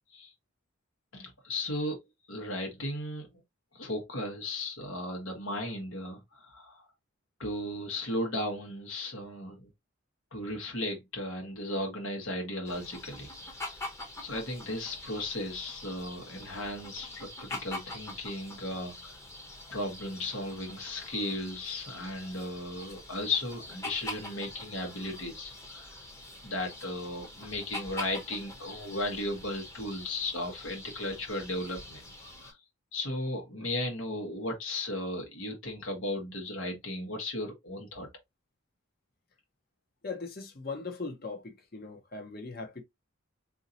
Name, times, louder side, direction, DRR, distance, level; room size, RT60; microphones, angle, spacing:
voice 1, 1.1-2.0 2.3-3.3 3.7-6.9 7.4-9.7 10.3-13.3 13.6-13.8 14.2-19.2 19.7-26.0 26.4-32.1 32.4-32.6 32.9-38.1, left 1 dB, 70° left, 1.3 m, -35 dB
sound 1, 12.6-32.5, left 1 dB, 15° left, 0.9 m, -44 dB
voice 2, 40.0-42.8, left 4 dB, 45° left, 0.9 m, -39 dB
3.9 x 2.8 x 2.7 m
head